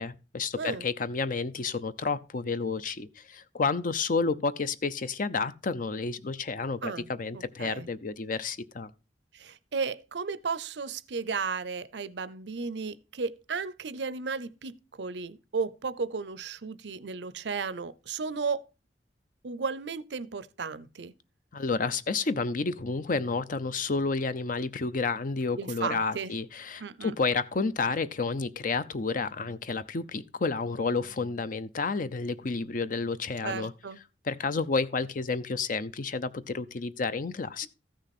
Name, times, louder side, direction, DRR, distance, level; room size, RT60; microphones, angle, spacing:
voice 1, 0.0-8.9 21.5-33.7 34.2-37.7, left 4 dB, 50° left, 0.6 m, -30 dB
voice 2, 0.6-0.9 6.8-7.9 9.3-18.7 19.4-21.1 25.6-26.3 26.8-27.1 33.4-34.0, right 5 dB, 80° right, 0.6 m, -34 dB
14.0 x 6.4 x 4.2 m
head